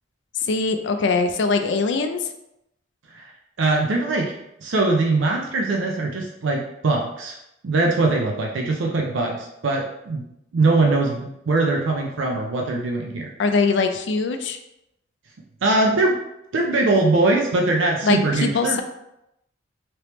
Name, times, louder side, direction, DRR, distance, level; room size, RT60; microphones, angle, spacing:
voice 1, 0.4-2.3 13.4-14.6 18.0-18.8, left 4 dB, 60° left, 7 dB, 0.4 m, -22 dB
voice 2, 3.6-4.3 4.6-7.4 7.6-10.2 10.5-13.3 15.6-16.2 16.5-18.8, right 2 dB, 70° right, 1 dB, 0.4 m, -21 dB
3.3 x 3.0 x 2.9 m, 0.84 s
head